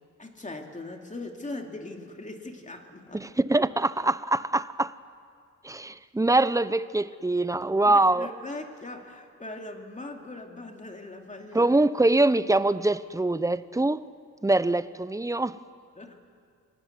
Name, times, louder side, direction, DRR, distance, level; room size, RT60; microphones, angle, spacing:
voice 1, 0.2-3.2 7.8-11.7 16.0-16.2, left 2 dB, 25° left, 3 dB, 2.6 m, -40 dB
voice 2, 3.1-4.9 5.6-8.3 11.5-14.0 14.4-15.6, right 2 dB, 10° right, 15 dB, 0.7 m, -24 dB
27.0 x 19.5 x 9.6 m, 2.1 s
cardioid pair, 90°, 32 cm